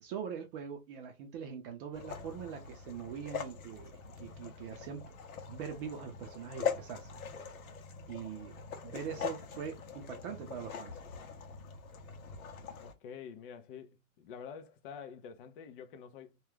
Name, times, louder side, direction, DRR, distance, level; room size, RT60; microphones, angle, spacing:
voice 1, 0.0-5.1 5.5-7.2 8.1-8.6 8.8-11.0, right 7 dB, 40° right, 0.6 m, -42 dB
sound 1, 1.9-12.9, left 6 dB, 75° left, 0.8 m, -42 dB
voice 2, 12.8-16.4, left 7 dB, 40° left, 0.5 m, -48 dB
2.3 x 2.3 x 3.2 m
hypercardioid pair, 130°, 42 cm